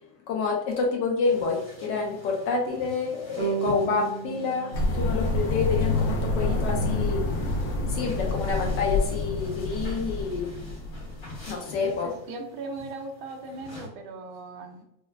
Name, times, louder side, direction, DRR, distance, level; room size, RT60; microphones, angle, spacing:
voice 1, 0.3-7.2 7.9-10.5 11.5-12.1, left 4 dB, 70° left, 1 dB, 1.1 m, -28 dB
sound 1, 1.2-13.9, left 1 dB, 50° left, 1.6 m, -47 dB
sound 2, 3.4-6.6, right 7 dB, 55° right, 1.4 m, -35 dB
sound 3, 4.7-11.5, left 2 dB, 90° left, 0.7 m, -27 dB
voice 2, 12.0-14.8, right 2 dB, 85° right, 4 dB, 1.4 m, -38 dB
4.4 x 2.2 x 2.2 m, 0.80 s
omnidirectional pair, 2.2 m